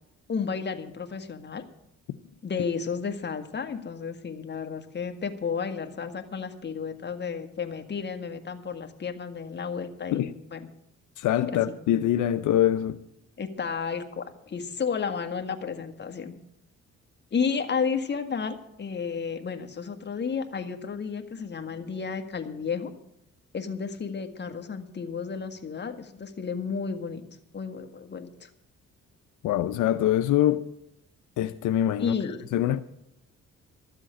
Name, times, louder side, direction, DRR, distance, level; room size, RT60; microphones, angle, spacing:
voice 1, 0.3-1.6 2.4-10.7 11.5-11.7 13.4-16.3 17.3-22.9 23.5-27.2 27.5-28.5 32.0-32.4, left 6 dB, 35° left, 1.6 m, -32 dB
voice 2, 11.2-13.0 29.4-30.6 31.4-32.1 32.5-32.8, left 12 dB, 80° left, 0.6 m, -24 dB
13.0 x 7.6 x 8.9 m
cardioid pair, 90°, 30 cm